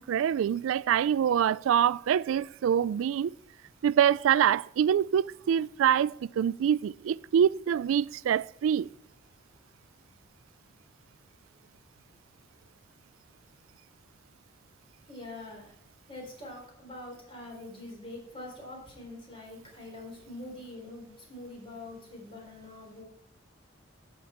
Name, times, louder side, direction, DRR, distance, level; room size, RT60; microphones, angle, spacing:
voice 1, 0.0-3.3 3.8-8.9, right 9 dB, 90° right, 0.3 m, -25 dB
voice 2, 15.1-15.7 16.1-23.1, left 2 dB, 25° left, 3.7 m, -44 dB
11.5 x 8.1 x 4.4 m
head